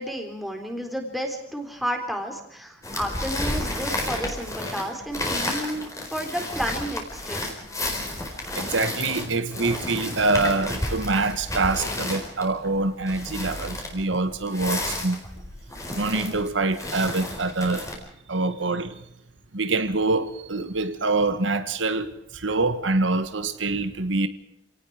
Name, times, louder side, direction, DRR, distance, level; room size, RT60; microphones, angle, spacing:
voice 1, 0.0-7.5, equal, ahead, 3 dB, 3.7 m, -31 dB
sound 1, 2.8-17.9, left 1 dB, 15° left, 4.5 m, -32 dB
voice 2, 8.5-15.2 16.0-17.9 18.3-19.0 19.5-24.3, right 3 dB, 75° right, 11 dB, 1.4 m, -25 dB
29.0 x 18.0 x 4.9 m, 0.81 s
head